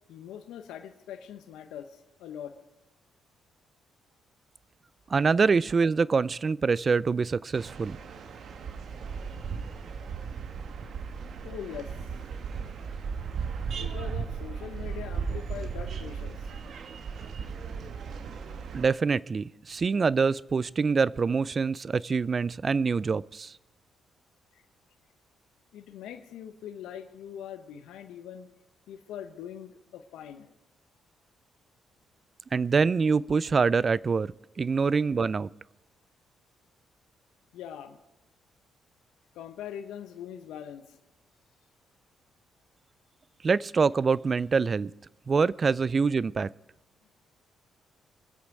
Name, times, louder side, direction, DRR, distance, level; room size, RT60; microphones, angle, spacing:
voice 1, 0.1-2.5 11.4-11.9 13.8-16.4 24.5-24.6 25.7-28.5 28.9-30.5 37.5-38.0 39.3-41.0, left 9 dB, 75° left, 0.8 m, -42 dB
voice 2, 5.1-8.0 18.7-23.5 32.5-35.5 43.4-44.9 45.3-46.5, right 5 dB, 40° right, 0.3 m, -25 dB
sound 1, 7.5-18.9, right 6 dB, 65° right, 1.1 m, -36 dB
22.5 x 8.1 x 4.8 m
hypercardioid pair, 50°, 0 cm